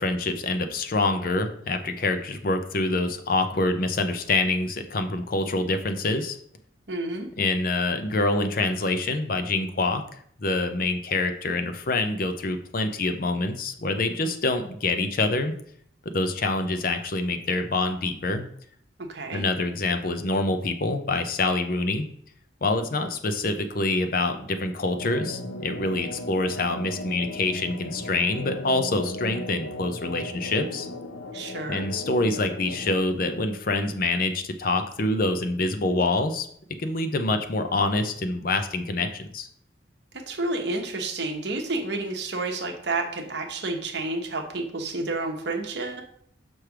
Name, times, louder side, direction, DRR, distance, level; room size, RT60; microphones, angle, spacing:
voice 1, 0.0-6.4 7.4-10.0 10.4-15.5 16.1-18.4 19.3-22.1 22.6-30.9 31.7-36.5 36.8-39.5, left 2 dB, 45° left, 8 dB, 0.6 m, -26 dB
voice 2, 6.9-7.3 19.0-19.5 31.3-31.9 40.1-46.0, right 2 dB, 60° right, 4 dB, 1.0 m, -30 dB
sound 1, 25.0-33.0, left 1 dB, 90° left, 0.6 m, -36 dB
6.1 x 3.3 x 5.8 m, 0.64 s
head